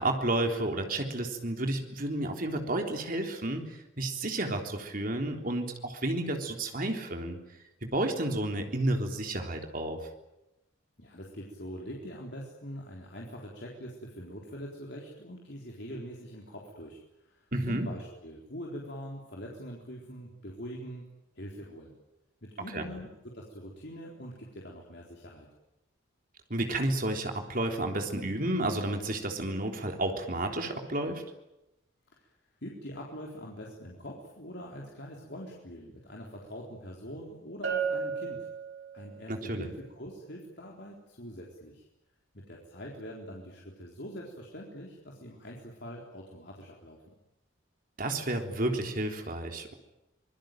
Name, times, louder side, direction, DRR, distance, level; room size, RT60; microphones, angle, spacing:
voice 1, 0.0-3.7 4.0-7.4 7.8-10.1 17.5-17.9 22.7-22.8 26.5-31.2 39.3-39.7 48.0-49.7, right 1 dB, 45° right, 3 dB, 3.6 m, -31 dB
voice 2, 11.0-21.0 21.3-21.9 22.4-25.5 32.1-32.3 32.6-38.5 38.9-41.8 42.3-47.0, equal, 55° left, -2 dB, 4.0 m, -43 dB
Bell, 37.6-39.3, right 6 dB, 75° right, 5.8 m, -33 dB
25.5 x 21.0 x 9.2 m, 0.92 s
head